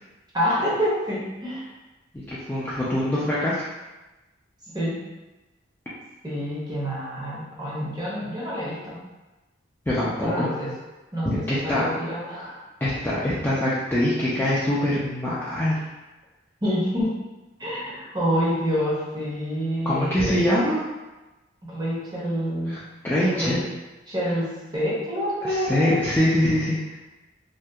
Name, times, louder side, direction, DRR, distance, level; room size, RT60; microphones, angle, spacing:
voice 1, 0.3-1.7 4.7-5.0 6.2-9.0 10.2-10.7 11.1-12.6 13.0-13.1 16.6-17.1 17.6-20.4 21.7-22.8 23.3-23.6 24.1-26.0, equal, 20° right, -7 dB, 0.7 m, -27 dB
voice 2, 2.3-3.6 9.9-10.5 11.2-11.8 12.8-15.8 19.9-20.9 22.7-22.8 23.0-23.6 25.7-26.8, left 1 dB, 10° left, -9 dB, 0.3 m, -23 dB
2.7 x 2.2 x 2.2 m, 1.1 s
head